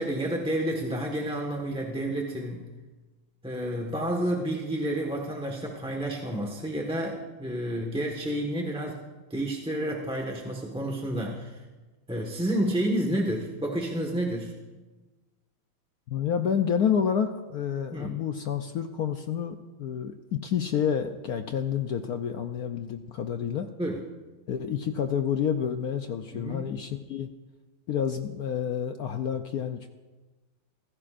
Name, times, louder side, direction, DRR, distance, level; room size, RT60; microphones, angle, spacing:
voice 1, 0.0-2.7 3.4-9.0 9.3-11.6 12.1-14.5 17.9-18.2 23.8-24.0 26.3-26.7, right 1 dB, 5° right, 0 dB, 1.1 m, -30 dB
voice 2, 16.1-23.7 24.5-27.3 27.9-29.9, left 8 dB, 70° left, 7 dB, 0.9 m, -29 dB
25.5 x 16.0 x 2.5 m, 1.2 s
omnidirectional pair, 2.3 m